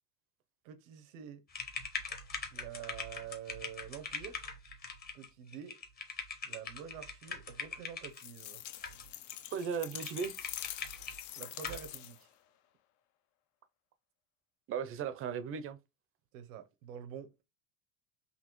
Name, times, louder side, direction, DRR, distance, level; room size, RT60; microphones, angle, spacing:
voice 1, 0.6-1.4 2.5-4.5 5.1-5.8 6.4-8.6 11.3-12.3 16.3-17.3, right 9 dB, 90° right, 0.9 m, -47 dB
sound 1, 1.5-8.2 8.8-9.3 9.6-9.7 10.0-11.2 11.6-11.9, left 4 dB, 25° left, 0.9 m, -42 dB
sound 2, 8.1-12.3, left 13 dB, 50° left, 0.5 m, -45 dB
voice 2, 9.5-10.4 14.7-15.8, right 6 dB, 35° right, 0.5 m, -36 dB
4.1 x 2.8 x 3.0 m
supercardioid pair, 130°, 39 cm